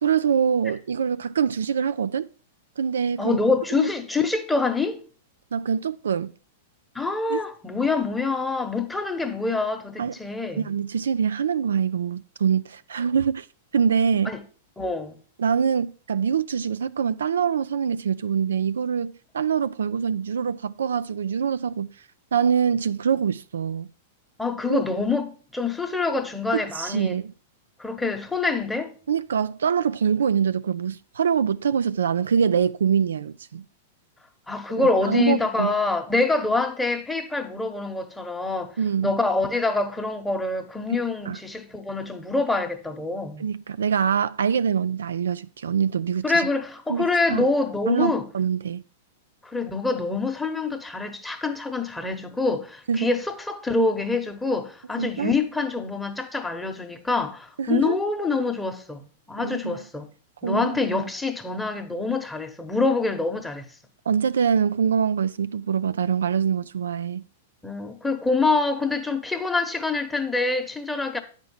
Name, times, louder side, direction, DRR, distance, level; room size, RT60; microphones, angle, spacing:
voice 1, 0.0-2.3 2.8-3.4 3.7-3.9 5.5-6.3 7.3-7.4 10.0-10.1 10.6-13.5 13.7-14.3 15.4-21.9 22.3-23.9 24.7-24.8 26.5-27.3 29.1-33.7 34.8-35.7 38.8-39.1 41.3-41.4 43.4-46.5 46.9-47.4 47.9-48.8 52.9-53.1 55.0-55.3 57.6-58.0 59.4-59.8 60.4-61.0 64.1-67.2, right 7 dB, 80° right, 0.3 m, -24 dB
voice 2, 3.2-5.0 6.9-10.7 14.2-14.4 14.8-15.2 24.4-27.2 27.8-28.9 34.5-43.4 46.2-48.3 49.4-60.1 60.4-63.7 67.6-71.2, left 3 dB, 5° left, 1.0 m, -26 dB
9.3 x 4.5 x 5.5 m
hypercardioid pair, 110°, 0 cm